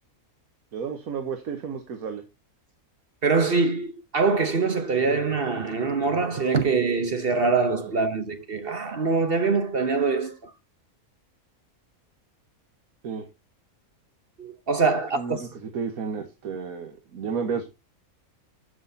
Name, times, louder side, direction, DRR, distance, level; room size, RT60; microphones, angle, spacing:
voice 1, 0.7-2.2 13.0-13.2 15.1-17.6, right 6 dB, 80° right, 1.6 m, -32 dB
voice 2, 3.2-10.3 14.4-15.4, right 4 dB, 45° right, 1.0 m, -24 dB
14.0 x 6.2 x 2.7 m
omnidirectional pair, 1.5 m